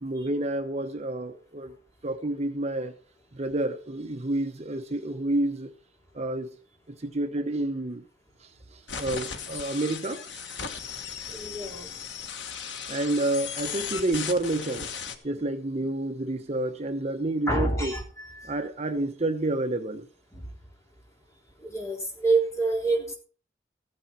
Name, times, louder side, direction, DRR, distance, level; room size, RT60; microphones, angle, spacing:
voice 1, 0.0-1.7 2.0-2.9 3.3-5.7 6.1-6.5 6.9-8.0 8.4-10.9 12.9-14.9 15.2-17.9 18.4-20.0, right 2 dB, 40° right, 1.0 m, -29 dB
sound 1, 8.9-15.2, left 6 dB, 90° left, 1.4 m, -37 dB
voice 2, 11.3-11.9 17.5-18.0 18.4-18.6 20.3-20.4 21.6-23.1, right 3 dB, 15° left, 3.6 m, -27 dB
15.0 x 9.8 x 4.5 m
head